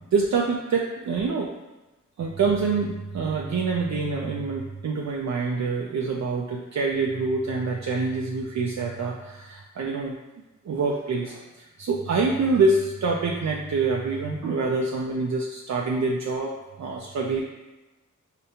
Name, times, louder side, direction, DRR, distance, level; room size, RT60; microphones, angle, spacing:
voice 1, 0.0-1.5 2.2-10.2 10.7-16.5 16.8-17.4, right 4 dB, 60° right, -2 dB, 0.4 m, -26 dB
5.0 x 2.2 x 2.8 m, 1.1 s
cardioid pair, 50°, 31 cm